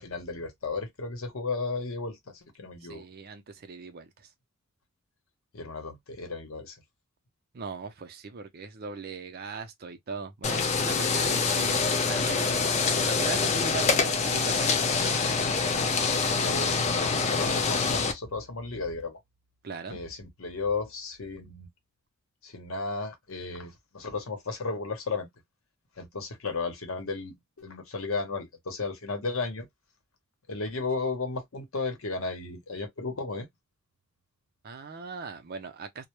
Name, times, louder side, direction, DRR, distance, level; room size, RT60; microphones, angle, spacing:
voice 1, 0.0-3.0 5.5-6.8 16.0-19.2 19.9-21.7 22.4-25.3 26.0-29.7 30.5-33.5, left 3 dB, 65° left, 0.8 m, -34 dB
voice 2, 2.9-4.3 7.5-14.7 19.6-20.0 34.6-36.1, right 4 dB, 45° right, 0.5 m, -39 dB
sound 1, 10.4-18.1, left 4 dB, 30° left, 0.4 m, -25 dB
2.1 x 2.0 x 3.0 m
head